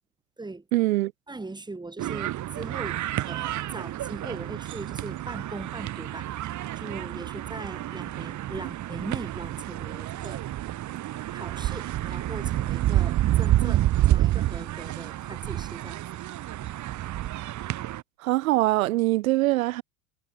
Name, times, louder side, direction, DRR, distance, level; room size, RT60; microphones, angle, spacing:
voice 1, 0.7-1.1 13.6-13.7 18.2-19.8, right 18 dB, 75° right, 2.4 m, -23 dB
voice 2, 1.3-6.3 6.8-10.4 11.3-16.0, right 3 dB, 10° right, 3.1 m, -40 dB
sound 1, 2.0-18.0, right 14 dB, 45° right, 2.0 m, -29 dB
hypercardioid pair, 80°, 41 cm